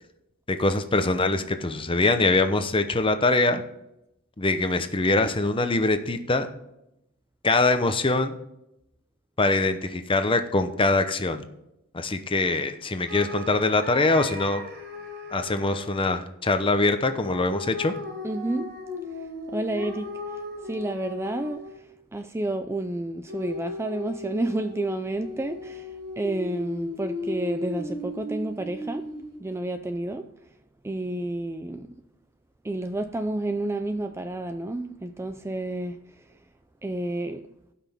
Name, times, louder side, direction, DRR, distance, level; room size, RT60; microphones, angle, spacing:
voice 1, 0.5-3.6 4.4-6.5 7.4-8.4 9.4-11.4 11.9-14.6 15.3-17.9, left 2 dB, 25° left, 0.7 m, -23 dB
sound 1, 13.0-16.0 17.1-21.8 23.3-29.4, left 2 dB, 50° right, 4.0 m, -36 dB
voice 2, 18.2-18.8 19.5-30.4 30.8-31.9 32.6-36.3 36.8-37.5, right 2 dB, 10° right, 0.3 m, -30 dB
16.0 x 5.9 x 3.6 m
head